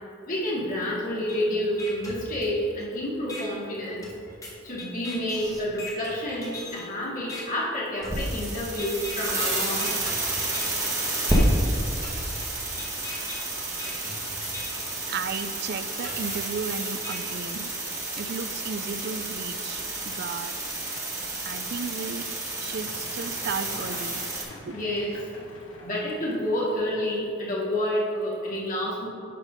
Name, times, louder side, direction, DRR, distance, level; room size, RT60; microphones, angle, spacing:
voice 1, 0.3-4.1 4.6-9.9 24.7-25.1 25.8-29.1, left 1 dB, 45° left, -5 dB, 2.4 m, -29 dB
sound 1, 1.3-1.4 1.8-2.8 3.3-3.4 4.0-6.9 7.3-7.4 8.0-8.5 8.8-9.4 9.8-10.8 11.3-11.4 12.0-14.9 15.3-15.4 16.0-17.2, left 2 dB, 15° left, 1.6 m, -39 dB
sound 2, 8.0-24.4, right 1 dB, 15° right, 1.4 m, -30 dB
voice 2, 15.1-17.7 18.2-20.6 21.4-22.3 22.6-24.2 24.7-24.8, right 5 dB, 55° right, 11 dB, 0.4 m, -34 dB
sound 3, 22.6-27.6, left 1 dB, 80° left, 1.9 m, -46 dB
11.5 x 5.1 x 5.3 m, 2.6 s
head